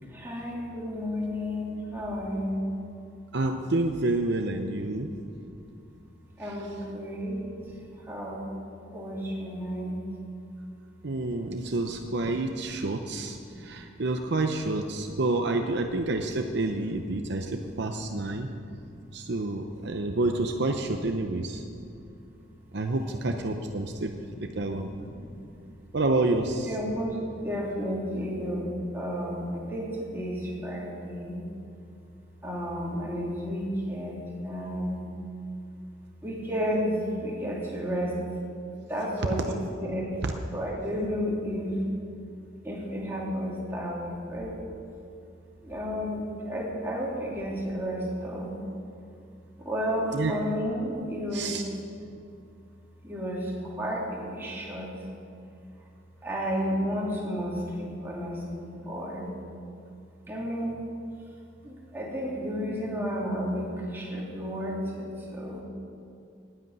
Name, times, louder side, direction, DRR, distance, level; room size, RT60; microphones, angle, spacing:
voice 1, 0.1-2.7 5.2-5.5 6.4-7.7 8.1-8.5 8.9-10.0 11.6-11.7 12.6-12.7 13.4-13.6 17.3-17.4 18.1-19.1 19.8-20.0 21.6-22.0 23.0-23.2 23.5-24.1 24.5-24.6 24.9-25.4 26.6-31.4 32.4-35.0 36.2-38.2 38.9-40.1 40.5-41.8 42.6-44.6 45.6-48.6 49.6-51.6 53.0-54.9 56.2-59.3 60.3-60.8 61.6-65.6, equal, 10° right, -5 dB, 3.0 m, -32 dB
voice 2, 3.3-5.1 6.4-6.5 11.0-18.5 19.1-21.6 22.7-24.9 25.9-26.7 40.2-40.3 50.1-50.4 51.3-51.6, right 2 dB, 60° right, 5 dB, 0.7 m, -29 dB
10.0 x 9.6 x 9.3 m, 2.6 s
head